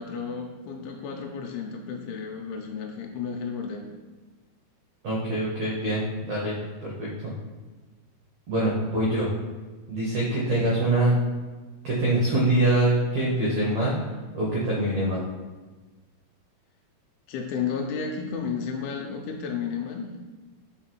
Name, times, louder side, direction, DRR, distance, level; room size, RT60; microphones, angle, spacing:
voice 1, 0.0-3.9 10.2-10.5 17.3-20.2, left 6 dB, 90° left, 1 dB, 2.6 m, -32 dB
voice 2, 5.0-6.5 6.8-7.1 8.5-9.3 9.9-11.2 11.8-13.9 14.3-15.2, right 1 dB, 70° right, -6 dB, 1.6 m, -24 dB
4.8 x 4.6 x 4.4 m, 1.3 s
omnidirectional pair, 4.4 m